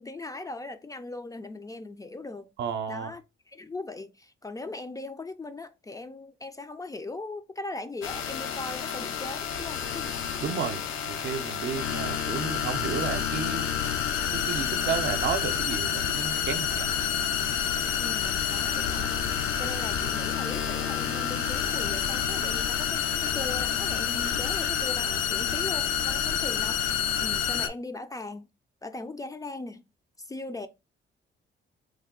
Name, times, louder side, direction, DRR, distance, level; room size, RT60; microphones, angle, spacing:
voice 1, 0.0-2.5 2.9-3.2 3.5-10.2 18.0-28.4 28.8-29.8 30.2-30.7, left 2 dB, 20° left, 0.3 m, -39 dB
voice 2, 2.6-3.1 10.4-13.7 14.3-16.9, right 7 dB, 65° right, 0.6 m, -32 dB
sound 1, 8.0-27.7, left 8 dB, 85° left, 0.5 m, -29 dB
3.2 x 2.2 x 3.6 m
cardioid pair, 90°, 20 cm